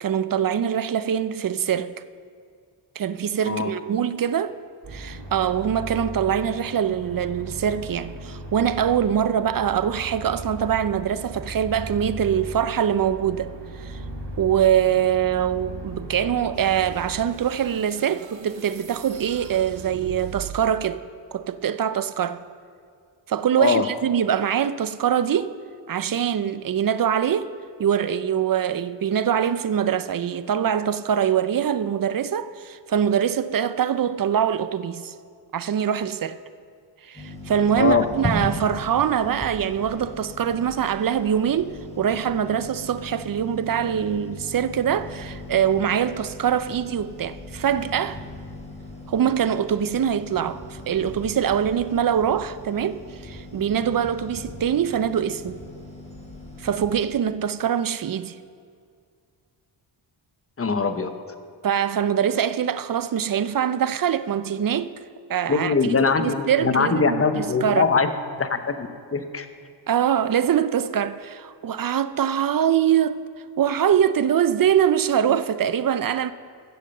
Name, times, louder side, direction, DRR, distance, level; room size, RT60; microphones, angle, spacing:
voice 1, 0.0-1.9 3.0-4.5 4.9-13.5 13.8-14.0 14.4-21.0 21.3-22.4 23.3-25.6 25.9-27.5 27.8-35.1 35.5-36.4 37.0-48.2 49.1-55.6 56.6-58.4 61.6-64.9 65.3-67.9 69.9-73.3 73.6-76.3, right 9 dB, 50° right, 0.6 m, -23 dB
sound 1, 4.8-17.3, right 1 dB, 65° right, 3.0 m, -37 dB
sound 2, 16.5-20.9, right 8 dB, 85° right, 1.0 m, -40 dB
sound 3, 37.2-57.1, left 1 dB, 15° left, 3.2 m, -38 dB
voice 2, 60.6-61.1 65.5-68.1 68.4-69.5, left 5 dB, 30° left, 1.1 m, -22 dB
15.0 x 7.5 x 6.6 m
cardioid pair, 75°, 45 cm